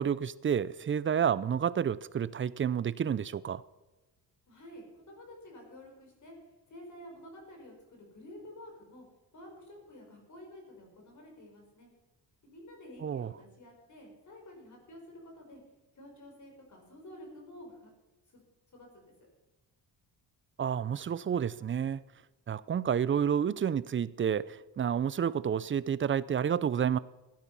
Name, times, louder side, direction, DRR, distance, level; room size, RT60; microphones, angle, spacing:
voice 1, 0.0-3.6 13.0-13.3 20.6-22.0 22.5-27.0, right 8 dB, 30° right, 18 dB, 0.5 m, -30 dB
voice 2, 4.5-6.3 6.7-9.0 9.3-11.9 12.4-15.6 15.9-17.9 18.3-18.4 18.7-19.1, left 1 dB, 45° left, 2 dB, 4.9 m, -50 dB
16.0 x 10.0 x 5.4 m, 1.1 s
cardioid pair, 115°, 39 cm